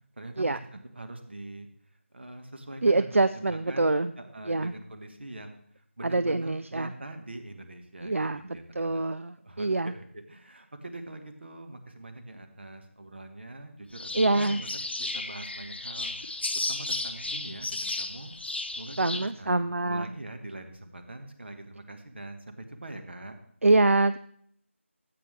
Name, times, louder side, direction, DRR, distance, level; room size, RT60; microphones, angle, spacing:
voice 1, 0.1-0.6 0.9-1.7 2.1-9.0 9.4-18.3 18.7-23.3, right 2 dB, 50° right, 6 dB, 1.5 m, -43 dB
voice 2, 2.8-4.1 4.5-4.7 6.0-6.9 8.0-8.4 8.8-9.9 14.1-14.6 19.0-20.1 23.6-24.2, right 2 dB, 70° right, 13 dB, 0.4 m, -25 dB
sound 1, 13.9-19.3, left 2 dB, 50° left, 0.9 m, -34 dB
14.0 x 8.5 x 3.3 m, 0.64 s
figure-of-eight pair, 165°, 7 cm